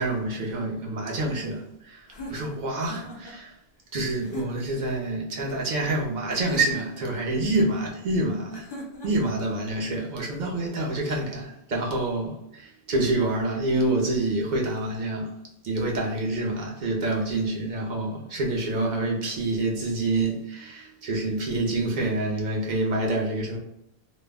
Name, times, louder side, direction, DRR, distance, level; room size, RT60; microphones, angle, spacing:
voice 1, 0.0-3.5 3.9-8.7 9.0-15.3 15.6-23.6, right 2 dB, 55° right, 0.7 m, -27 dB
sound 1, 2.1-3.4 4.2-4.8 6.3-7.1 8.5-9.3, equal, 30° left, 0.5 m, -39 dB
2.3 x 2.0 x 3.4 m
omnidirectional pair, 1.0 m